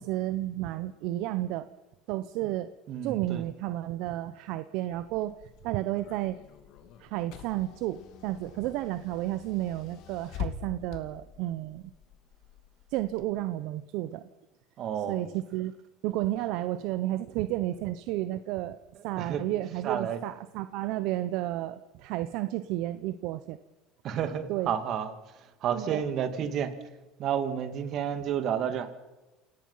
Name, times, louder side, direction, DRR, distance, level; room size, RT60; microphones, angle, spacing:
voice 1, 0.0-1.7 2.1-2.7 3.0-5.3 5.6-6.4 7.0-11.8 12.9-14.3 15.1-15.7 16.0-18.8 19.0-23.6 24.5-24.7 25.7-26.0, right 15 dB, 70° right, 13 dB, 0.8 m, -32 dB
voice 2, 2.9-3.4 14.8-15.2 19.2-19.5 19.8-20.2 24.0-25.1 25.6-26.7 27.2-28.9, right 8 dB, 50° right, 10 dB, 2.2 m, -30 dB
Car / Engine, 4.9-13.2, left 8 dB, 60° left, 2.7 m, -45 dB
28.5 x 18.0 x 5.6 m, 1.0 s
cardioid pair, 130°, 0 cm